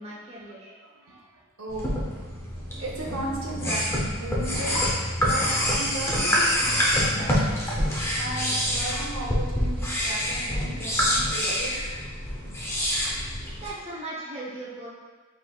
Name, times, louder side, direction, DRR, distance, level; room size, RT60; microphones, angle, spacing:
voice 1, 0.0-0.7 13.5-14.9, right 2 dB, 30° right, -6 dB, 0.8 m, -38 dB
voice 2, 0.8-2.4 2.8-7.4 8.2-11.8 13.4-13.6, right 2 dB, 75° right, -3 dB, 0.7 m, -36 dB
sound 1, 1.7-13.7, equal, 10° left, 0.6 m, -26 dB
4.7 x 3.8 x 2.3 m, 1.4 s
head